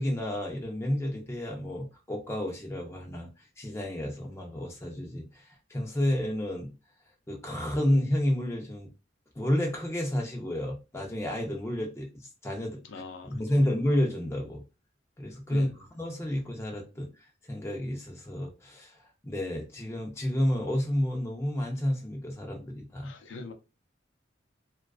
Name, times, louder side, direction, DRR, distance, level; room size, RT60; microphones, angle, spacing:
voice 1, 0.0-3.3 3.6-6.7 7.3-8.9 9.4-12.8 13.2-14.6 15.2-17.1 17.5-19.0 19.2-23.1, left 1 dB, 15° left, 0.5 m, -30 dB
voice 2, 12.8-13.7 15.5-15.7 23.0-23.5, left 3 dB, 75° left, 0.5 m, -43 dB
2.3 x 2.3 x 2.3 m
head